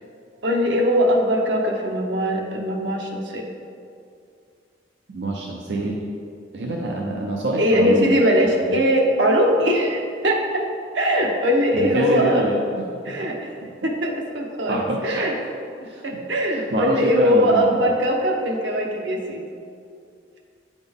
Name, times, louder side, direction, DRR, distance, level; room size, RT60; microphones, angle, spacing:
voice 1, 0.4-3.5 7.6-10.7 10.9-12.5 13.0-13.5 13.8-15.3 16.0-19.5, equal, 85° right, 0 dB, 0.9 m, -21 dB
voice 2, 5.1-6.1 6.5-8.2 8.4-8.8 11.7-12.6 13.1-13.2 13.6-13.7 14.7-15.3 15.8-16.0 16.7-17.7, right 2 dB, 70° right, -1 dB, 0.6 m, -26 dB
8.7 x 4.2 x 3.5 m, 2.4 s
head